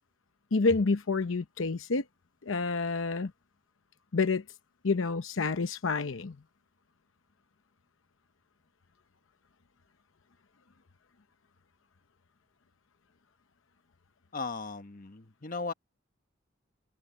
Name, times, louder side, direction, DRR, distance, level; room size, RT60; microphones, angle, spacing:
voice 1, 0.5-2.0 2.5-3.3 4.1-4.4 4.8-6.4, left 3 dB, 75° left, 0.8 m, -28 dB
voice 2, 14.3-15.7, left 4 dB, 45° left, 1.2 m, -37 dB
head